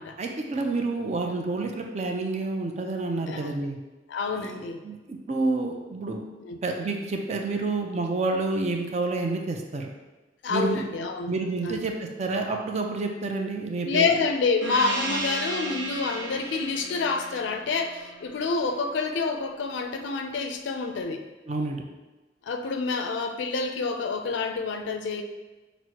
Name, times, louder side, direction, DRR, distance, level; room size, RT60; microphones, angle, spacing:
voice 1, 0.2-3.8 4.4-6.2 6.6-9.9 10.5-10.9 11.3-14.1 21.5-21.8, right 3 dB, 40° right, 3 dB, 0.4 m, -29 dB
voice 2, 4.1-4.8 6.4-6.6 10.4-11.3 11.6-11.8 13.8-21.2 22.4-25.2, left 4 dB, 75° left, 6 dB, 0.4 m, -28 dB
Gong, 14.6-19.6, right 2 dB, 75° right, 0.8 m, -35 dB
6.0 x 2.0 x 2.8 m, 1.2 s
head